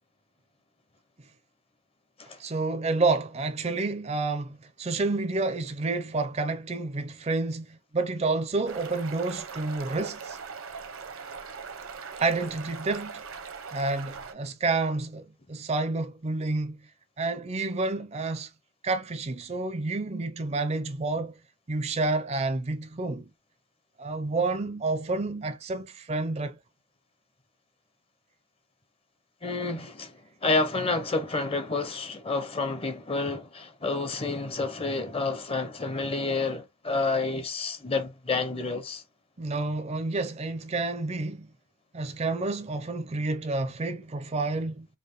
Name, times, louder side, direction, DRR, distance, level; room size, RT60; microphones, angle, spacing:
voice 1, 2.4-10.4 12.2-13.2 13.7-16.8 17.2-18.5 18.8-21.4 21.7-23.3 24.0-26.6 39.4-41.5 41.9-44.9, right 3 dB, 30° right, 0.4 m, -29 dB
sound 1, 8.7-14.3, right 5 dB, 75° right, 0.8 m, -40 dB
voice 2, 29.4-39.0, left 3 dB, 25° left, 0.6 m, -29 dB
4.9 x 2.6 x 3.0 m
head